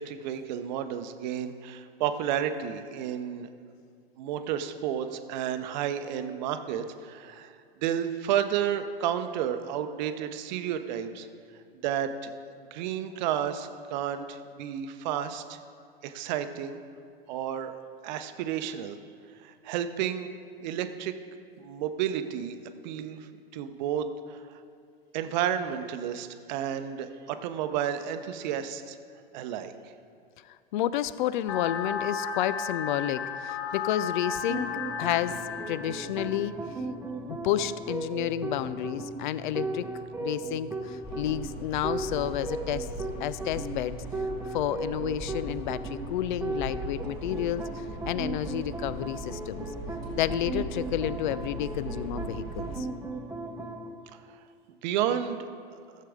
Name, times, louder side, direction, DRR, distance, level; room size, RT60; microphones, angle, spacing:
voice 1, 0.0-3.5 4.2-11.3 11.8-12.3 12.7-15.6 16.0-16.8 17.3-17.8 18.0-19.0 19.4-20.3 20.6-21.1 21.6-22.6 22.8-23.3 23.5-24.6 25.1-29.0 29.3-29.7 54.8-55.5, right 9 dB, 50° right, 9 dB, 0.7 m, -31 dB
voice 2, 30.5-34.7 35.0-35.4 35.7-36.6 37.2-39.9 40.2-42.9 43.2-44.0 44.5-49.7 50.1-52.9, left 11 dB, 55° left, 16 dB, 0.5 m, -30 dB
sound 1, 31.5-36.5, left 6 dB, 35° left, 0.8 m, -34 dB
sound 2, 34.5-53.9, right 2 dB, 10° right, 0.9 m, -37 dB
sound 3, 41.0-52.8, right 1 dB, 15° left, 2.9 m, -40 dB
14.0 x 7.5 x 3.6 m, 2.3 s
hypercardioid pair, 105°, 30 cm